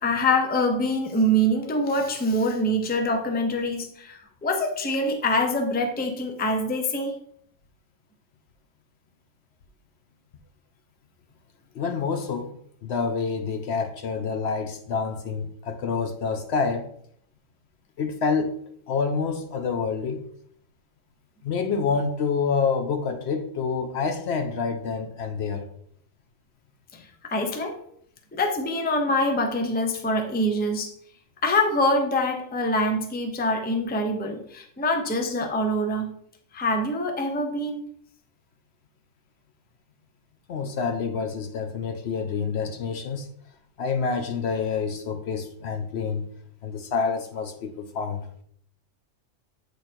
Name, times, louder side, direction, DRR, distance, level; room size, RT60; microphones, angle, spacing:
voice 1, 0.0-7.1 26.9-27.8 28.3-30.9 31.4-36.1 36.5-37.8, left 1 dB, 10° left, 0.5 m, -25 dB
voice 2, 11.8-12.5 12.8-16.9 18.0-18.5 18.9-20.2 21.4-25.7 40.5-43.3 43.8-46.2 46.6-48.2, left 5 dB, 65° left, 0.8 m, -27 dB
8.0 x 3.2 x 4.4 m
omnidirectional pair, 1.3 m